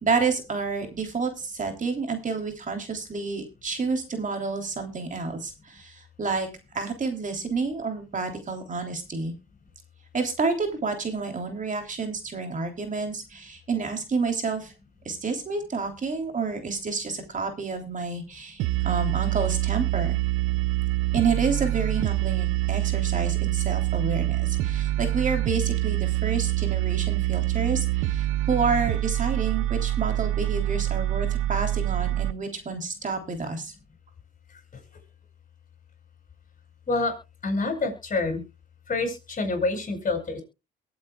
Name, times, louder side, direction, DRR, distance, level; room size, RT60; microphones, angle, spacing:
voice 1, 0.0-6.5 6.7-9.3 10.1-14.7 15.1-20.2 21.1-33.7, right 4 dB, 40° right, 5 dB, 3.4 m, -29 dB
sound 1, 18.6-32.3, right 16 dB, 90° right, 0.5 m, -25 dB
voice 2, 37.4-38.4 38.9-40.4, left 3 dB, 40° left, 5 dB, 7.6 m, -27 dB
23.0 x 8.6 x 2.4 m, 0.28 s
cardioid pair, 90°, 20 cm